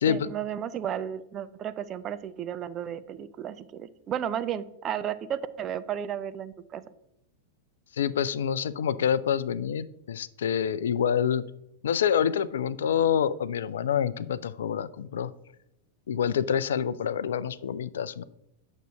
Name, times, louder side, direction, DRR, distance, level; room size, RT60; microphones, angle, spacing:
voice 1, 0.1-6.8, right 9 dB, 30° right, 12 dB, 0.7 m, -33 dB
voice 2, 8.0-11.4 11.8-15.3 16.1-18.2, left 8 dB, 65° left, 16 dB, 0.4 m, -27 dB
9.2 x 6.2 x 5.5 m, 0.80 s
figure-of-eight pair, 90°, 0 cm